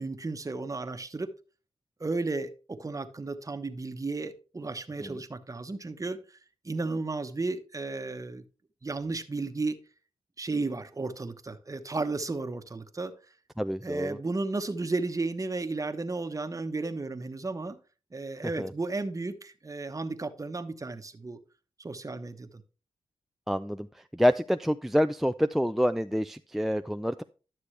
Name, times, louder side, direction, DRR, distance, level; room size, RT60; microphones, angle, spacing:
voice 1, 0.0-1.3 2.0-6.4 6.6-8.4 8.8-9.8 10.4-13.1 13.8-17.8 18.1-21.4 21.8-22.6, right 3 dB, 30° right, 1.1 m, -33 dB
voice 2, 13.6-14.2 18.6-18.7 23.5-23.9 24.1-27.2, equal, ahead, 0.4 m, -27 dB
11.5 x 6.8 x 3.2 m
cardioid pair, 50°, 11 cm